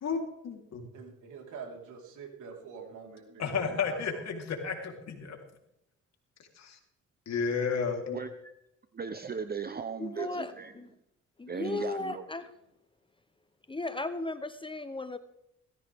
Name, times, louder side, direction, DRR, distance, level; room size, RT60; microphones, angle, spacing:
voice 1, 0.0-0.9 3.4-5.4 6.6-6.8 7.3-8.2, left 5 dB, 60° left, 2 dB, 3.7 m, -32 dB
voice 2, 0.9-4.2, right 6 dB, 75° right, 1 dB, 4.4 m, -45 dB
voice 3, 8.1-8.5 8.9-10.7 11.5-12.2, right 6 dB, 30° right, 10 dB, 0.9 m, -37 dB
voice 4, 10.0-10.9 11.4-12.5 13.7-15.2, left 2 dB, 15° left, 11 dB, 0.9 m, -36 dB
18.0 x 15.0 x 3.6 m, 0.83 s
cardioid pair, 90°, 30 cm